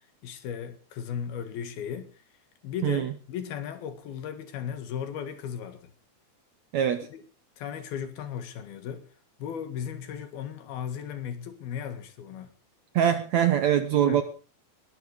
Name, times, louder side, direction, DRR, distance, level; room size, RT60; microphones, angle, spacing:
voice 1, 0.2-2.1 2.6-5.9 7.1-7.2 7.6-9.1 9.4-12.5 13.9-14.2, left 8 dB, 75° left, 3.7 m, -36 dB
voice 2, 2.8-3.1 6.7-7.1 12.9-14.2, right 10 dB, 70° right, 1.8 m, -23 dB
21.0 x 11.5 x 5.1 m
omnidirectional pair, 4.4 m